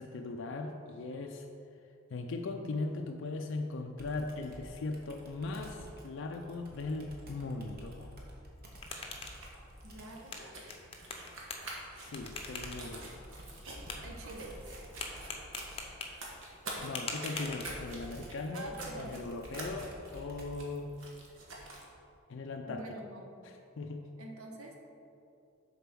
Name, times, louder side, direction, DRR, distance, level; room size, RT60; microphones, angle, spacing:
voice 1, 0.0-1.5 2.1-8.1 12.0-13.2 16.8-20.9 22.3-22.8 23.4-24.0, left 3 dB, 60° left, 4 dB, 0.4 m, -39 dB
Computer keyboard, 4.0-10.2 12.1-20.7, equal, 45° right, 1.0 m, -51 dB
sound 1, 8.5-18.1, left 3 dB, 30° left, 0.7 m, -45 dB
sound 2, 8.7-21.9, right 2 dB, 65° right, 1.3 m, -48 dB
voice 2, 9.8-10.6 14.0-14.6 18.5-19.1 22.7-23.4 24.2-24.8, right 2 dB, 85° right, 2 dB, 1.0 m, -46 dB
6.8 x 4.1 x 6.0 m, 2.6 s
head